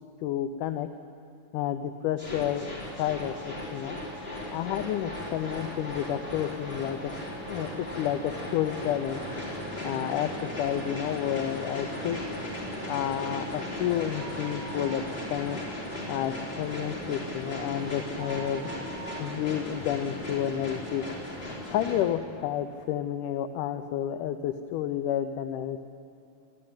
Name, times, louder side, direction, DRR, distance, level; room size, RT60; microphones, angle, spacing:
voice 1, 0.2-0.9 1.5-2.7 3.0-4.0 4.5-7.2 7.5-9.2 9.8-12.2 12.9-15.0 15.3-15.6 16.1-18.7 19.2-21.0 21.7-25.9, left 11 dB, 85° left, 8 dB, 2.2 m, -30 dB
sound 1, 2.2-22.0, left 1 dB, 30° left, 5.2 m, -37 dB
sound 2, 14.1-15.7 16.0-16.1 16.5-20.9 21.5-21.6 22.3-22.4 22.7-22.8, right 6 dB, 75° right, 1.4 m, -46 dB
27.0 x 13.0 x 8.8 m, 2.7 s
omnidirectional pair, 3.6 m